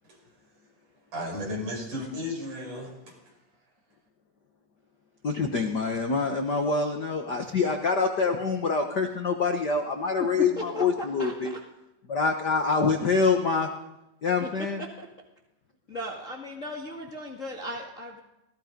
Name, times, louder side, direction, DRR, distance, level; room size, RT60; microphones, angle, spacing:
voice 1, 1.1-3.3, left 1 dB, 60° right, 0 dB, 7.5 m, -35 dB
voice 2, 5.2-11.5 12.1-13.7 14.2-14.8, left 4 dB, 60° left, 4 dB, 1.0 m, -25 dB
voice 3, 10.6-11.3 12.5-12.6 14.4-14.5 14.8-15.1 15.9-18.2, equal, 30° left, 0 dB, 1.7 m, -37 dB
27.0 x 19.0 x 5.3 m, 0.93 s
omnidirectional pair, 4.0 m